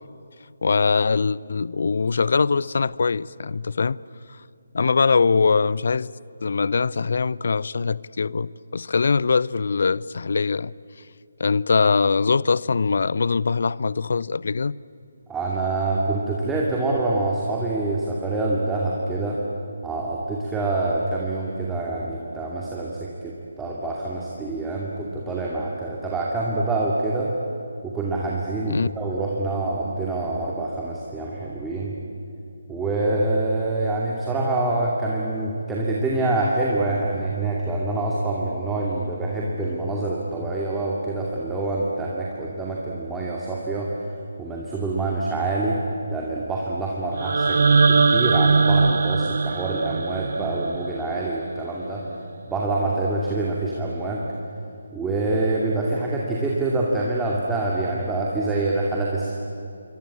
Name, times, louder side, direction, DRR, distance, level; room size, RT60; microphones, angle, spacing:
voice 1, 0.6-4.0 4.7-6.1 6.4-10.7 11.4-14.8 28.7-28.9, left 4 dB, 50° left, 21 dB, 0.6 m, -22 dB
voice 2, 15.3-19.4 19.8-27.3 27.8-32.0 32.7-43.9 44.4-45.8 46.1-52.0 52.5-54.2 54.9-59.3, right 2 dB, 5° right, -4 dB, 2.5 m, -26 dB
sound 1, 47.2-51.2, right 4 dB, 50° right, 1.1 m, -20 dB
28.0 x 24.0 x 8.8 m, 2.6 s
figure-of-eight pair, 145°, 0 cm